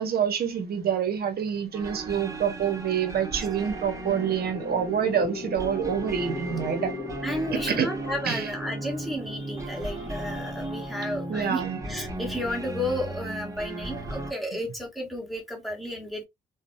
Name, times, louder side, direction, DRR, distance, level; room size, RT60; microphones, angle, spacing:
voice 1, 0.0-6.9 7.5-7.9 8.3-8.5 11.3-11.8, right 8 dB, 50° right, 0.7 m, -27 dB
sound 1, 1.7-14.3, right 2 dB, 15° right, 0.8 m, -36 dB
sound 2, 2.8-10.8, left 5 dB, 20° left, 0.4 m, -41 dB
voice 2, 7.2-16.3, left 1 dB, ahead, 1.2 m, -32 dB
2.6 x 2.0 x 2.4 m
cardioid pair, 90°, 20 cm